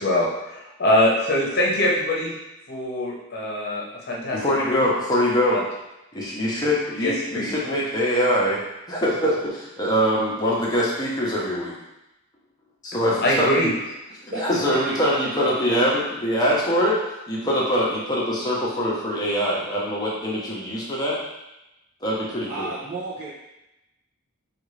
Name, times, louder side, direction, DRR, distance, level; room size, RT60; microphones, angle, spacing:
voice 1, 0.0-2.3 2.7-4.8 5.5-5.6 7.0-7.5 13.2-13.7, left 1 dB, 45° left, -3 dB, 0.9 m, -23 dB
voice 2, 4.3-5.6 6.1-8.6 8.9-11.7 12.8-13.5 14.2-17.0 17.3-21.2 22.0-22.7, equal, 15° left, -6 dB, 0.8 m, -23 dB
voice 3, 14.3-15.5 22.5-23.3, right 2 dB, 30° right, -9 dB, 0.6 m, -33 dB
5.0 x 2.5 x 3.2 m, 0.93 s
head